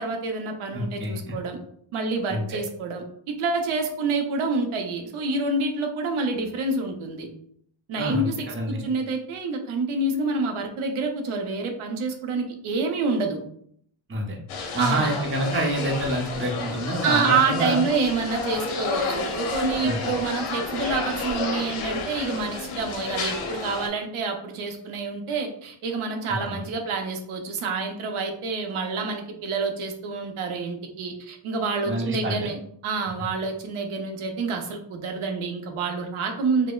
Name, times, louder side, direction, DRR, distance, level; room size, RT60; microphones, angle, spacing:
voice 1, 0.0-1.6 1.9-3.0 3.4-7.3 7.9-8.3 8.7-13.4 14.8-15.1 17.0-32.6 32.8-36.7, right 3 dB, 80° right, 3 dB, 0.7 m, -27 dB
voice 2, 0.7-1.3 2.3-2.6 7.9-8.8 14.1-14.4 14.7-17.8 19.8-20.1 26.3-26.6 31.9-32.3, right 1 dB, 25° right, 0 dB, 0.6 m, -27 dB
sound 1, 14.5-23.9, left 4 dB, 85° left, 0.8 m, -31 dB
5.0 x 2.0 x 2.3 m, 0.66 s
wide cardioid pair, 135°, 49 cm